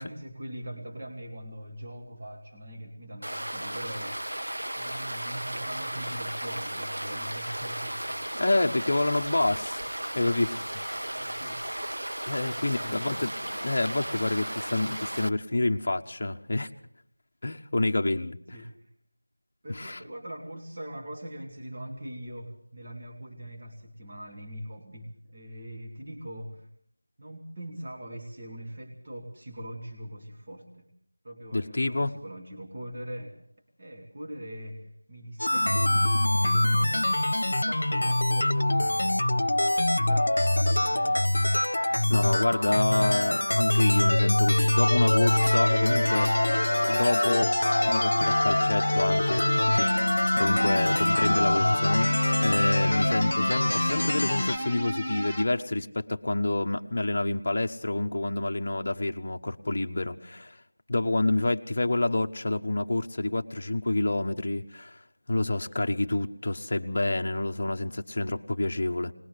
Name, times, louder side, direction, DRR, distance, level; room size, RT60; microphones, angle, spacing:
voice 1, 0.0-4.2 4.7-8.3 11.1-11.6 12.4-13.2 18.5-18.9 19.6-26.7 27.2-30.9 31.2-33.4 33.8-37.1 37.4-41.3 41.7-43.0, equal, 25° right, -1 dB, 2.3 m, -41 dB
sound 1, 3.2-15.3, right 1 dB, 85° right, 0.8 m, -35 dB
voice 2, 8.4-9.8 10.1-11.2 12.3-13.3 13.6-16.7 17.4-18.6 19.7-20.0 31.5-32.1 42.1-46.3 46.8-47.5 47.8-49.5 49.7-49.9 50.4-52.1 52.4-60.6 60.9-65.0 65.3-69.1, left 2 dB, 35° left, 4 dB, 1.1 m, -28 dB
sound 2, 35.4-54.6, left 1 dB, 65° left, 1.1 m, -24 dB
sound 3, 44.8-55.4, left 1 dB, ahead, 1.2 m, -33 dB
21.0 x 20.5 x 6.6 m, 0.65 s
figure-of-eight pair, 175°, 0 cm